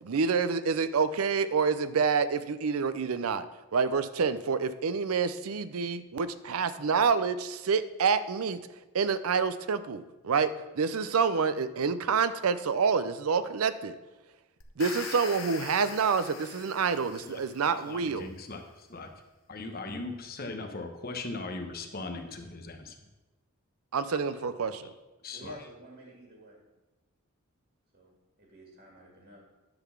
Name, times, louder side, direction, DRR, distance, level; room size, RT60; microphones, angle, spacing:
voice 1, 0.0-3.5 3.7-8.6 8.9-14.0 14.8-18.3 23.9-24.9, right 5 dB, 90° right, 13 dB, 0.5 m, -28 dB
sound 1, 14.6-17.8, left 6 dB, 70° left, 0.9 m, -42 dB
voice 2, 17.7-19.1 19.5-23.0 24.3-24.8 25.2-25.5, left 3 dB, 45° left, 5 dB, 1.0 m, -39 dB
voice 3, 25.3-26.6 27.9-29.5, equal, 50° right, -2 dB, 1.8 m, -50 dB
10.5 x 4.0 x 7.0 m, 1.1 s
head